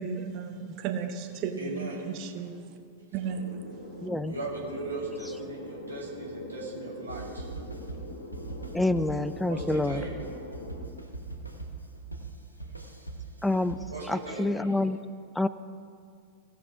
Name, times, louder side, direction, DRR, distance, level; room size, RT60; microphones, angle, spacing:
voice 1, 0.0-2.6 3.1-3.5, right 6 dB, 40° right, 6 dB, 0.8 m, -34 dB
voice 2, 1.6-2.0 4.3-7.4 9.4-10.2 13.9-14.7, right 2 dB, 80° right, -5 dB, 2.3 m, -38 dB
sound 1, 3.2-10.9, left 2 dB, 70° left, 1.3 m, -43 dB
voice 3, 4.0-4.3 8.7-10.0 13.4-13.8 14.1-15.0 15.4-15.5, left 2 dB, 5° left, 14 dB, 0.3 m, -27 dB
sound 2, 7.1-14.4, right 3 dB, 90° left, 1.0 m, -41 dB
17.0 x 5.6 x 4.7 m, 2.3 s
figure-of-eight pair, 90°, 0 cm